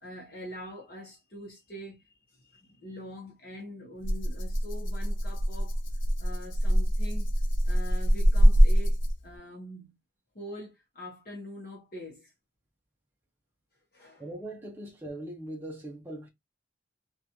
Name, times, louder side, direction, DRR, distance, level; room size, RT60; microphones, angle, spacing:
voice 1, 0.0-5.8 6.2-7.3 7.6-9.0 9.2-9.9 10.3-12.3 13.9-14.2, equal, 50° left, 0.8 m, -44 dB
Rattle (instrument), 4.0-9.4, equal, 85° left, 0.6 m, -24 dB
voice 2, 14.2-16.3, right 1 dB, 10° right, 0.5 m, -40 dB
2.9 x 2.3 x 2.5 m
head